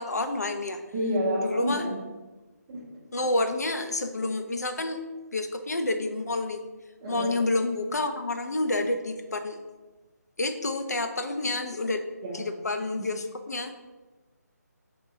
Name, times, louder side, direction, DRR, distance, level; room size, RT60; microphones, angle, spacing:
voice 1, 0.0-0.8 1.4-1.9 3.1-5.0 5.3-6.6 7.1-9.6 10.4-12.0 12.3-13.8, left 2 dB, 65° left, 7 dB, 0.4 m, -29 dB
voice 2, 0.9-2.0 2.7-2.8 7.0-7.3 12.2-12.4 13.0-13.1, equal, 15° right, -2 dB, 0.5 m, -29 dB
4.3 x 2.8 x 2.6 m, 1.2 s
figure-of-eight pair, 150°, 9 cm